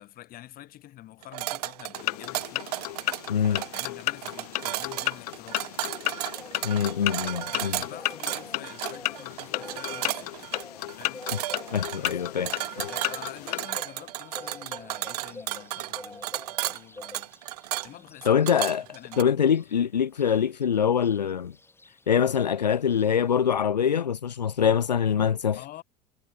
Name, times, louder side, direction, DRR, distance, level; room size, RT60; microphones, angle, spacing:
voice 1, 0.0-2.7 3.4-5.7 7.5-10.3 11.0-11.3 12.0-17.3 17.8-18.4 18.9-19.9 25.5-25.8, left 14 dB, 45° left, 4.1 m, -47 dB
sound 1, 1.2-19.2, right 15 dB, 65° right, 1.3 m, -34 dB
sound 2, 1.9-13.7, left 16 dB, 65° left, 1.2 m, -34 dB
voice 2, 3.3-3.6 6.6-7.8 11.7-12.5 12.8-12.9 18.3-18.9 19.2-21.5 22.1-25.6, left 8 dB, 85° left, 0.6 m, -24 dB
sound 3, 4.5-23.4, left 3 dB, 10° left, 3.0 m, -48 dB
figure-of-eight pair, 75°, 21 cm